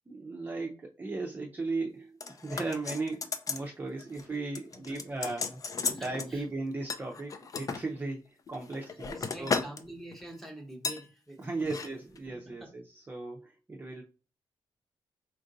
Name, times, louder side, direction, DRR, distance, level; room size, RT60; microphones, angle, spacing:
voice 1, 0.1-9.7 11.4-14.0, right 3 dB, 20° right, 0.6 m, -37 dB
sound 1, 2.2-3.7 4.0-4.3 4.5-6.3 6.9-7.8 8.5-9.8 10.1-10.3 10.8-11.0 11.6-11.9 12.2-12.3, left 5 dB, 40° left, 0.4 m, -35 dB
voice 2, 5.9-6.4 9.1-11.7 12.3-12.7, right 1 dB, ahead, 0.9 m, -46 dB
4.5 x 2.5 x 3.8 m
wide cardioid pair, 155°, 9 cm